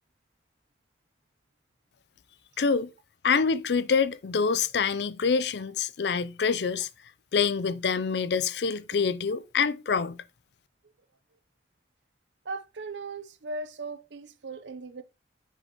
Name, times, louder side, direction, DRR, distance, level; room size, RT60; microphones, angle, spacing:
voice 1, 2.6-2.9 3.2-6.9 7.3-10.2, left 5 dB, 70° left, 0.5 m, -26 dB
voice 2, 12.4-15.0, right 3 dB, 90° right, 0.7 m, -38 dB
7.2 x 5.5 x 3.0 m
head